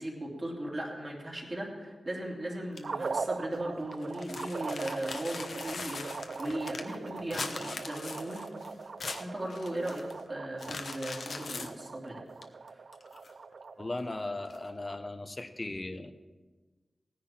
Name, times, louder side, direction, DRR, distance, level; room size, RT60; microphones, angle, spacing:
voice 1, 0.0-8.5 9.2-10.0 10.3-12.8, right 1 dB, 30° right, -2 dB, 2.9 m, -37 dB
sound 1, 2.8-3.1 3.5-3.6 3.9-10.2 10.6-11.7 12.4-12.5 12.9-13.5 14.5-14.6, left 4 dB, 70° left, 1.0 m, -41 dB
sound 2, 2.8-15.1, right 4 dB, 70° right, 0.3 m, -41 dB
voice 2, 13.8-16.1, left 2 dB, 30° left, 9 dB, 0.8 m, -37 dB
18.0 x 10.5 x 4.4 m, 1.3 s
wide cardioid pair, 125°, 0 cm